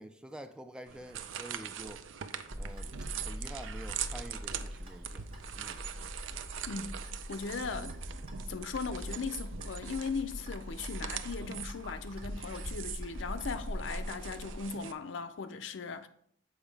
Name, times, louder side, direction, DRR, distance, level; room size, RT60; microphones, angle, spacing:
voice 1, 0.0-2.1 2.6-2.9 3.2-5.3 5.6-5.8, right 1 dB, 5° right, 0.3 m, -47 dB
sound 1, 0.9-14.9, right 9 dB, 75° right, 0.4 m, -43 dB
Clock, 2.5-14.6, equal, 30° right, 1.3 m, -42 dB
voice 2, 6.7-7.0 7.3-8.0 8.5-16.1, left 5 dB, 70° left, 0.5 m, -38 dB
7.1 x 4.7 x 3.3 m
head